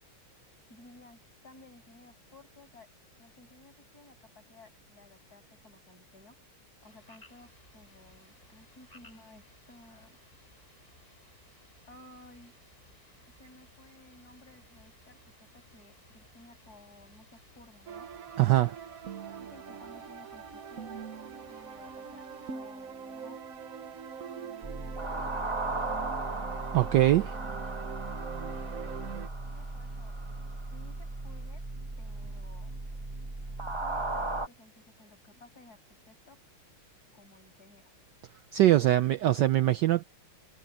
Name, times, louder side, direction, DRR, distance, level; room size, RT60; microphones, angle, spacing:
voice 1, 0.7-2.9 3.2-6.4 6.8-10.2 11.8-12.6 13.3-18.1 19.0-21.0 21.5-23.4 29.5-30.2 30.7-31.6 32.0-32.7 33.8-36.4 37.1-38.0, left 2 dB, 45° left, 7.2 m, -56 dB
sound 1, 6.8-22.5, left 1 dB, 25° left, 6.5 m, -61 dB
sound 2, 17.9-29.3, right 6 dB, 50° right, 1.3 m, -43 dB
voice 2, 18.4-18.8 26.7-27.3 38.5-40.0, right 14 dB, 70° right, 1.1 m, -22 dB
sound 3, 24.6-34.5, right 2 dB, 15° right, 1.0 m, -36 dB
omnidirectional pair, 2.3 m